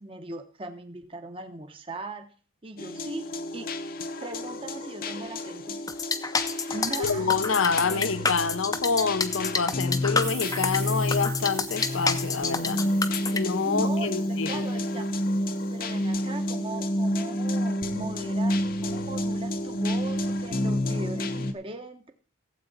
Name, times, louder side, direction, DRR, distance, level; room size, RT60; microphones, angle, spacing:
voice 1, 0.0-2.3 2.6-3.3 3.5-3.7 4.2-5.8 6.7-7.4 7.9-8.1 13.6-15.1 15.7-22.1, right 2 dB, 25° right, 0.9 m, -39 dB
sound 1, 2.8-21.5, left 1 dB, 45° left, 0.7 m, -30 dB
sound 2, 5.9-13.4, left 4 dB, 20° left, 0.6 m, -28 dB
voice 2, 7.0-12.8 13.3-14.7, left 5 dB, 75° left, 0.6 m, -27 dB
sound 3, 10.2-14.9, right 11 dB, 55° right, 1.1 m, -44 dB
15.5 x 8.1 x 4.0 m
head